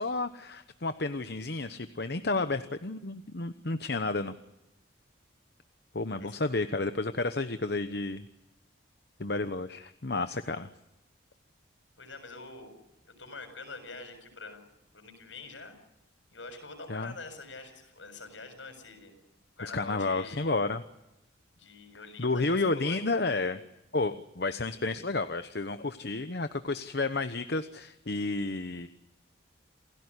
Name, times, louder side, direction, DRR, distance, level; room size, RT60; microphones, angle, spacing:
voice 1, 0.0-4.4 5.9-8.3 9.2-10.7 16.9-17.1 19.6-20.8 22.2-23.6 23.9-28.9, left 3 dB, 55° left, 10 dB, 1.0 m, -31 dB
voice 2, 2.1-2.5 6.1-6.3 12.0-12.7 13.0-14.6 14.9-15.7 16.3-19.1 19.6-20.6 21.6-23.0 23.3-23.4, left 3 dB, 75° left, 8 dB, 6.9 m, -45 dB
28.5 x 17.0 x 9.8 m, 0.93 s
head